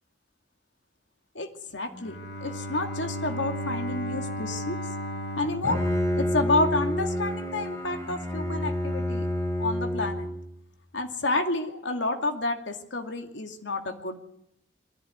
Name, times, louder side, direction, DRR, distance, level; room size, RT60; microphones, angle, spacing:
voice 1, 1.3-4.8 5.4-5.8 6.2-9.3 9.6-10.3 10.9-14.2, left 2 dB, 80° left, 5 dB, 2.5 m, -29 dB
Bowed string instrument, 1.9-6.9, equal, 60° left, 3.3 m, -35 dB
Bowed string instrument 2, 5.4-10.5, left 1 dB, 15° left, 5.0 m, -29 dB
23.0 x 14.5 x 9.5 m, 0.77 s
head